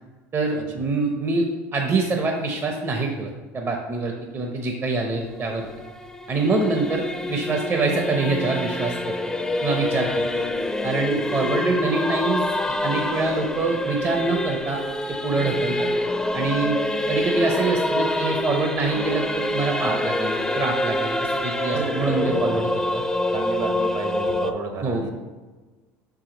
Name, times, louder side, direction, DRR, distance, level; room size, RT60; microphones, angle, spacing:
voice 1, 0.3-3.3 3.5-5.7 6.3-9.2 9.6-10.4 10.8-14.8 15.1-15.9 16.3-16.8 17.1-22.7 22.9-23.0 24.8-25.1, right 3 dB, 35° right, 2 dB, 0.8 m, -25 dB
Singing / Musical instrument, 5.1-24.5, left 1 dB, 5° left, 0.5 m, -26 dB
voice 2, 21.7-22.6 23.3-25.1, right 3 dB, 55° right, 4 dB, 1.2 m, -32 dB
5.6 x 4.9 x 3.9 m, 1.3 s
hypercardioid pair, 85°, 7 cm